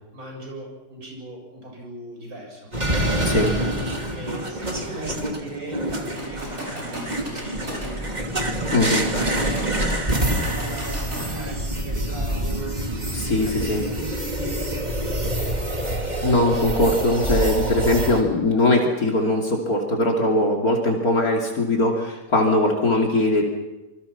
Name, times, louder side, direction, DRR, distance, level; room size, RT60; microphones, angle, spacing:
voice 1, 0.1-2.7 4.1-8.0 9.2-15.3, right 1 dB, 60° right, 0 dB, 7.7 m, -37 dB
sound 1, 2.7-18.2, right 1 dB, 25° right, 2.7 m, -26 dB
voice 2, 3.2-3.5 8.7-9.0 13.1-13.8 16.2-23.4, left 1 dB, 60° left, 0 dB, 3.3 m, -20 dB
sound 2, 6.0-11.6, equal, 40° right, 7.6 m, -36 dB
27.0 x 24.5 x 5.8 m, 1.0 s
omnidirectional pair, 1.8 m